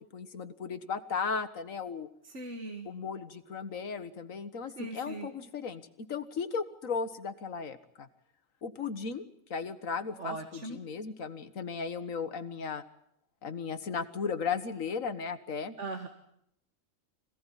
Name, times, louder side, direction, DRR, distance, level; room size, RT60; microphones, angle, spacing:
voice 1, 0.0-2.1 2.9-8.1 8.6-9.3 9.5-12.8 13.4-15.7, left 5 dB, 85° left, 11 dB, 1.9 m, -36 dB
voice 2, 2.2-2.9 4.8-5.3 10.2-10.8 15.8-16.1, right 2 dB, 60° right, 5 dB, 2.0 m, -39 dB
26.0 x 17.0 x 10.0 m, 0.76 s
omnidirectional pair, 1.4 m